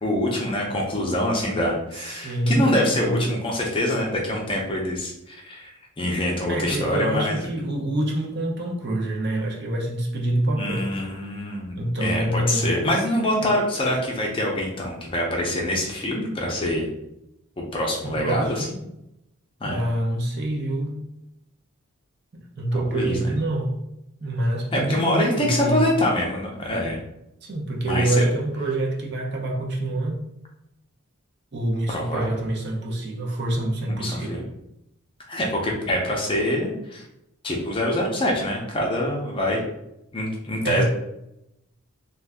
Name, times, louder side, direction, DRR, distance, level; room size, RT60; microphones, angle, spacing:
voice 1, 0.0-7.4 10.5-11.7 12.0-16.9 17.6-18.7 19.6-19.8 22.7-23.3 24.7-27.0 27.8-28.3 31.9-32.3 33.9-34.4 35.3-37.1 37.4-39.6 40.1-40.8, left 1 dB, 25° left, 0.5 m, -25 dB
voice 2, 2.0-3.3 6.5-10.9 11.8-12.9 13.4-13.5 18.0-18.7 19.6-21.1 22.3-23.8 24.2-25.9 27.4-30.2 31.5-34.4 40.6-40.8, right 1 dB, 50° right, 0.6 m, -26 dB
2.6 x 2.3 x 3.4 m
head